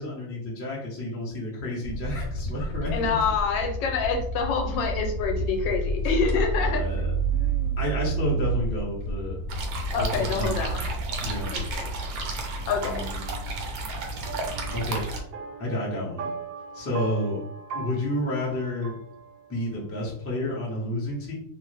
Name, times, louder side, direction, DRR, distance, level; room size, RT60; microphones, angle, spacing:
voice 1, 0.0-3.2 6.6-7.1 7.8-9.4 10.0-10.6 11.2-11.6 14.7-15.1 15.6-16.3 16.7-17.4 17.7-19.0 19.5-21.3, left 1 dB, 15° left, -6 dB, 0.5 m, -30 dB
sound 1, 1.8-11.8, right 2 dB, 70° left, 1.2 m, -29 dB
voice 2, 2.9-6.8 7.3-7.8 9.9-10.8 11.5-11.9 12.7-13.1, left 5 dB, 85° left, 3 dB, 1.3 m, -27 dB
sound 2, 9.5-15.2, right 2 dB, 65° right, 0.9 m, -32 dB
sound 3, 12.8-19.8, right 5 dB, 90° right, 1.3 m, -40 dB
3.1 x 2.1 x 3.2 m, 0.67 s
omnidirectional pair, 2.0 m